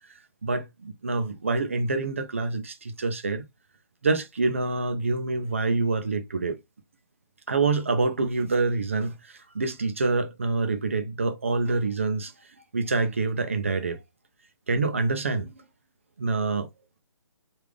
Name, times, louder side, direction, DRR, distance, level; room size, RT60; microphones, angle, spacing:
voice 1, 0.4-3.5 4.0-6.6 7.5-12.3 12.7-14.0 14.7-15.7 16.2-16.7, right 3 dB, 25° right, 0.4 m, -26 dB
3.3 x 2.4 x 3.4 m
hypercardioid pair, 170°, 16 cm